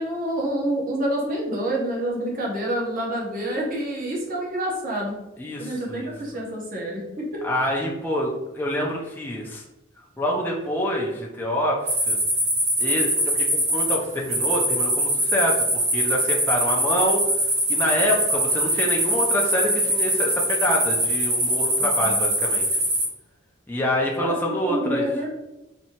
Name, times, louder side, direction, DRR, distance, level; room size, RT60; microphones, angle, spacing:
voice 1, 0.0-5.1 5.6-7.4 21.8-22.3 24.2-25.3, right 1 dB, 45° right, -3 dB, 0.9 m, -28 dB
voice 2, 5.4-6.1 7.4-9.6 10.2-12.2 12.8-22.8 23.7-25.2, equal, 10° left, -2 dB, 0.4 m, -26 dB
sound 1, 11.9-23.1, equal, 75° right, 1.4 m, -23 dB
4.2 x 2.7 x 2.8 m, 0.98 s
head